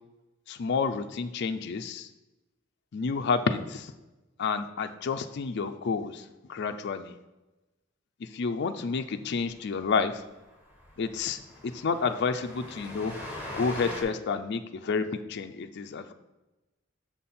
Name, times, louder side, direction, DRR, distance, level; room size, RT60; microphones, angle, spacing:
voice 1, 0.5-2.1 2.9-3.9 4.4-7.1 8.2-10.2 11.0-13.1 13.5-16.1, left 5 dB, 55° left, 7 dB, 0.4 m, -30 dB
Train, 9.4-9.5 9.8-9.9 10.2-10.3 10.7-14.0, left 1 dB, 10° right, 1.5 m, -41 dB
7.4 x 5.5 x 4.2 m, 1.1 s
head